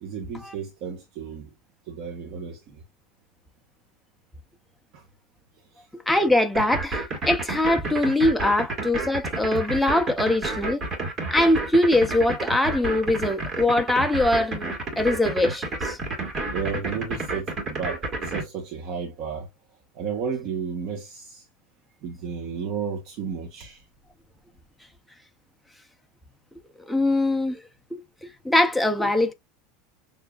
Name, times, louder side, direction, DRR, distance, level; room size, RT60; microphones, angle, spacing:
voice 1, 0.0-1.5 1.9-2.8 4.9-5.0 5.7-5.9 16.5-19.5 19.9-21.4 22.0-23.8, right 6 dB, 40° right, 1.1 m, -33 dB
voice 2, 5.9-10.8 11.3-16.0 26.9-27.6 27.9-29.3, left 1 dB, ahead, 0.5 m, -22 dB
sound 1, 6.5-18.4, right 2 dB, 20° right, 1.6 m, -29 dB
6.9 x 2.7 x 2.4 m
supercardioid pair, 175°, 0 cm